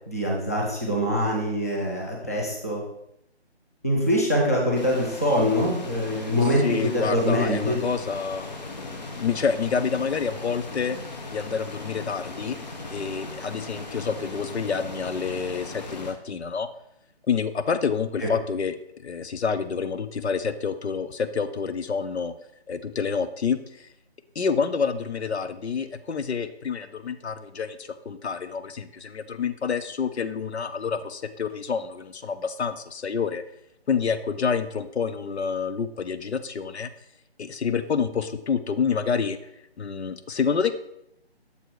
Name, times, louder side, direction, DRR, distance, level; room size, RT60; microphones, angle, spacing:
voice 1, 0.1-2.8 3.8-7.8, equal, 15° left, -2 dB, 0.5 m, -24 dB
sound 1, 4.7-16.1, left 2 dB, 40° left, 0.8 m, -38 dB
voice 2, 6.4-11.0 11.3-12.6 12.9-16.7 17.3-22.3 22.7-23.9 24.4-33.4 33.9-36.9 37.4-39.4 39.8-40.7, left 6 dB, 75° left, 11 dB, 0.6 m, -28 dB
6.9 x 4.3 x 4.6 m, 0.78 s
figure-of-eight pair, 160°, 33 cm